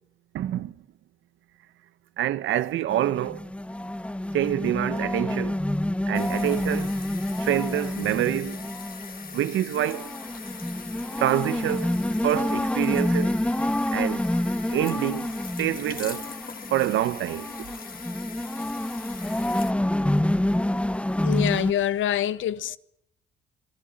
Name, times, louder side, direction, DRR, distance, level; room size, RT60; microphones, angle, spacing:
voice 1, 0.3-0.7 2.2-3.4 4.3-5.6 6.1-6.9 7.4-8.6 9.3-10.2 11.2-13.4 13.9-14.2 14.7-15.3 15.6-16.3 16.7-17.5, right 12 dB, 80° right, 1.2 m, -26 dB
sound 1, 2.9-21.7, left 1 dB, 5° left, 1.1 m, -28 dB
sound 2, 6.1-19.7, left 6 dB, 45° left, 2.6 m, -42 dB
voice 2, 21.2-22.8, left 10 dB, 75° left, 1.2 m, -25 dB
27.0 x 19.0 x 9.0 m
cardioid pair, 90°, 20 cm